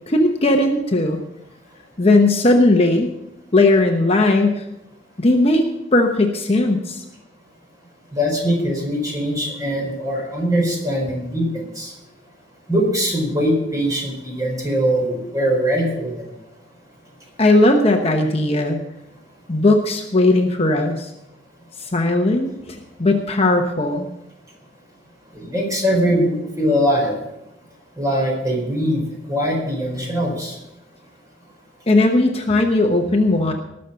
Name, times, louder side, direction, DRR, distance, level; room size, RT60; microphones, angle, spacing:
voice 1, 0.1-1.2 2.0-3.1 3.5-4.6 5.2-5.7 5.9-7.0 17.4-18.8 19.5-21.1 21.8-24.1 31.9-33.5, left 2 dB, 35° left, 3 dB, 1.0 m, -17 dB
voice 2, 8.1-11.9 12.7-16.3 25.3-27.3 27.9-30.6, equal, 20° right, -1 dB, 4.5 m, -22 dB
19.5 x 6.6 x 5.6 m, 0.89 s
head